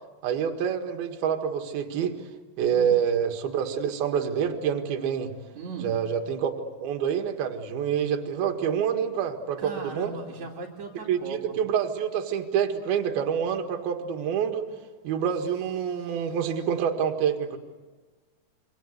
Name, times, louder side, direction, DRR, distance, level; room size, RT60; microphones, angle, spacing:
voice 1, 0.2-2.2 2.6-5.3 5.8-6.5 6.8-10.2 11.1-14.7 15.0-17.6, right 8 dB, 75° right, 4 dB, 3.5 m, -27 dB
voice 2, 2.6-3.0 5.6-6.0 9.6-11.6 15.1-15.3 16.0-16.3, right 3 dB, 50° right, -4 dB, 3.4 m, -39 dB
27.0 x 25.0 x 8.1 m, 1.3 s
omnidirectional pair, 4.6 m